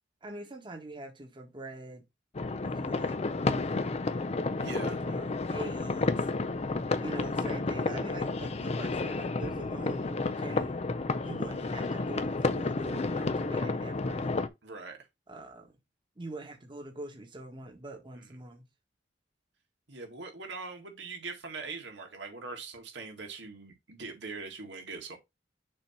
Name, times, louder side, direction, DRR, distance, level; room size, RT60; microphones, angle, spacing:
voice 1, 0.2-2.0 2.6-4.1 5.0-6.3 7.0-10.8 11.2-14.4 15.3-15.8 16.2-18.6, right 1 dB, 25° right, 1.4 m, -43 dB
sound 1, 2.3-14.5, left 3 dB, 35° left, 0.5 m, -31 dB
voice 2, 4.6-5.0 10.5-10.7 14.6-15.0 18.1-18.3 19.9-25.2, right 4 dB, 85° right, 1.9 m, -42 dB
6.7 x 2.9 x 5.8 m
head